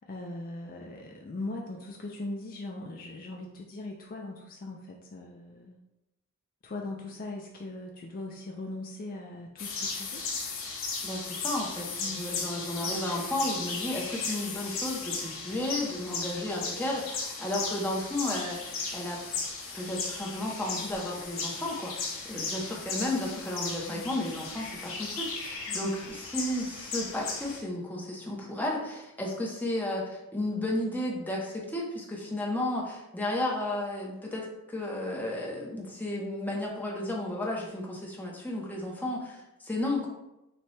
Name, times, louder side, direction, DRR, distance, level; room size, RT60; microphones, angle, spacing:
voice 1, 0.0-5.8 6.6-10.2 12.0-13.0 23.9-24.2 25.7-26.0 39.0-39.3, left 2 dB, 40° left, 1 dB, 0.4 m, -40 dB
sound 1, 9.6-27.6, left 4 dB, 65° left, 0.9 m, -36 dB
voice 2, 11.0-19.2 19.7-40.1, left 1 dB, 10° left, -2 dB, 0.7 m, -33 dB
6.6 x 2.2 x 3.2 m, 0.93 s
head